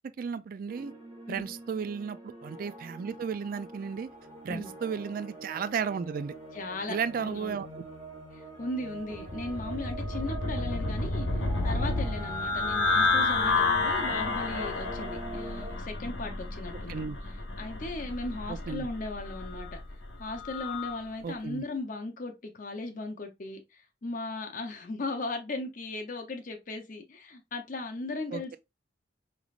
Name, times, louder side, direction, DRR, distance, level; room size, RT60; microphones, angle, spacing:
voice 1, 0.2-0.9 1.3-4.1 4.4-6.3 6.9-7.7 16.9-17.2 18.5-18.9 21.2-21.6 28.3-28.6, right 6 dB, 45° right, 0.3 m, -34 dB
sound 1, 0.7-15.8, right 2 dB, 30° right, 1.2 m, -43 dB
voice 2, 6.5-7.6 8.3-11.3 11.6-17.0 17.6-19.7 20.2-28.6, left 2 dB, 45° left, 0.6 m, -37 dB
sound 2, 9.1-21.0, left 3 dB, 75° left, 1.1 m, -30 dB
5.0 x 3.2 x 2.4 m
head